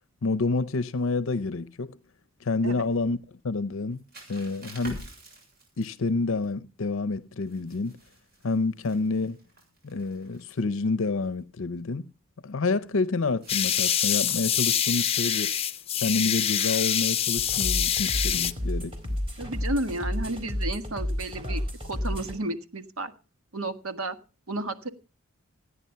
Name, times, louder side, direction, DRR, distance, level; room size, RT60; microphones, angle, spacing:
voice 1, 0.2-2.0 2.4-3.2 3.4-4.0 4.3-5.1 5.8-8.0 8.4-9.4 9.8-12.1 12.4-15.6 16.0-19.0, left 3 dB, 70° left, 0.6 m, -28 dB
sound 1, 3.7-6.5 7.4-10.8 11.1-11.5 13.3-15.2 17.2-19.9, right 1 dB, 45° right, 7.2 m, -49 dB
sound 2, 13.5-18.5, left 9 dB, 25° left, 0.6 m, -25 dB
sound 3, 17.4-22.4, left 1 dB, 25° right, 3.9 m, -31 dB
voice 2, 19.4-23.1 23.5-24.2 24.5-24.9, right 2 dB, 80° right, 1.6 m, -32 dB
15.5 x 9.8 x 5.6 m
head